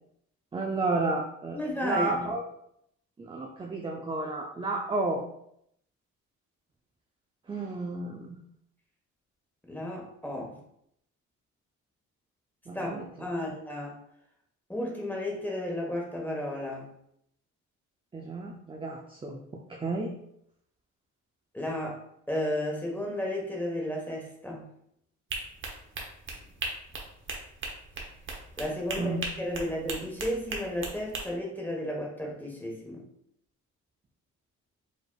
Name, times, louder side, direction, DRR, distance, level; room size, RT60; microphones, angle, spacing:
voice 1, 0.5-2.4 3.2-5.2 7.5-8.4 12.7-13.1 18.1-19.4 19.7-20.2 29.0-29.4, right 3 dB, 15° right, 0 dB, 0.5 m, -32 dB
voice 2, 1.5-2.3 9.7-10.6 12.7-14.0 14.7-16.9 21.5-22.0 22.3-24.7 28.6-33.0, left 1 dB, 5° left, -1 dB, 1.3 m, -33 dB
sound 1, 25.3-31.2, right 3 dB, 40° right, 1.0 m, -37 dB
5.1 x 3.3 x 2.3 m, 0.74 s
cardioid pair, 90°, 30 cm